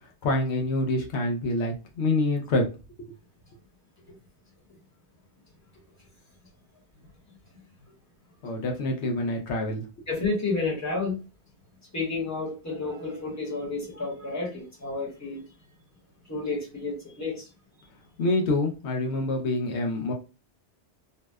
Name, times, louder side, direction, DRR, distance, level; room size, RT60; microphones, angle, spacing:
voice 1, 0.2-2.7 8.4-9.9 18.2-20.1, left 2 dB, 75° left, 0.9 m, -26 dB
voice 2, 10.1-11.2 11.9-15.4 16.3-17.5, left 3 dB, 15° left, 1.0 m, -30 dB
2.7 x 2.1 x 2.2 m
omnidirectional pair, 1.2 m